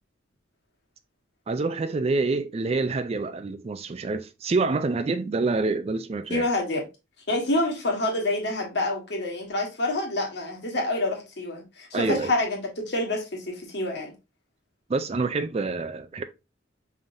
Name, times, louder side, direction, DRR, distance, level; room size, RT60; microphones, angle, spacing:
voice 1, 1.5-6.5 11.9-12.3 14.9-16.2, right 3 dB, 30° right, 0.3 m, -27 dB
voice 2, 6.3-6.8 7.3-14.1, left 2 dB, 65° left, 1.5 m, -27 dB
5.2 x 3.8 x 2.5 m
head